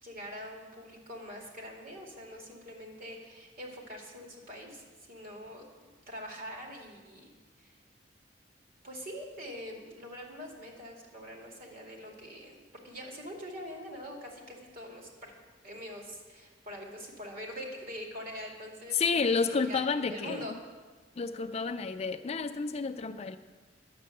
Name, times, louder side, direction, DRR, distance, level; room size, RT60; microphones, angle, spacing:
voice 1, 0.0-7.3 7.6-7.7 8.8-15.3 15.6-19.0 19.5-19.8 20.1-20.6, equal, 55° right, 0 dB, 2.3 m, -44 dB
voice 2, 18.9-20.5 21.2-23.4, left 4 dB, 35° left, 9 dB, 0.4 m, -30 dB
10.5 x 6.8 x 7.7 m, 1.4 s
head